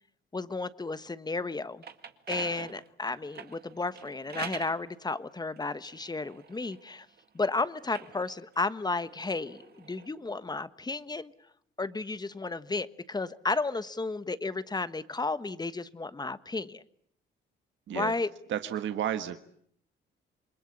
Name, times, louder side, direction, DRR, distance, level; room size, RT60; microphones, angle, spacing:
voice 1, 0.3-1.8 2.3-7.1 7.3-11.3 11.8-16.8 17.9-18.3, left 3 dB, 20° left, 14 dB, 1.3 m, -33 dB
sound 1, 1.6-4.8 5.6-7.2 7.8-10.1, right 7 dB, 55° right, 2.1 m, -45 dB
voice 2, 18.5-19.4, right 10 dB, 70° right, 9 dB, 1.5 m, -32 dB
28.0 x 22.0 x 8.6 m, 0.66 s
cardioid pair, 90°, 20 cm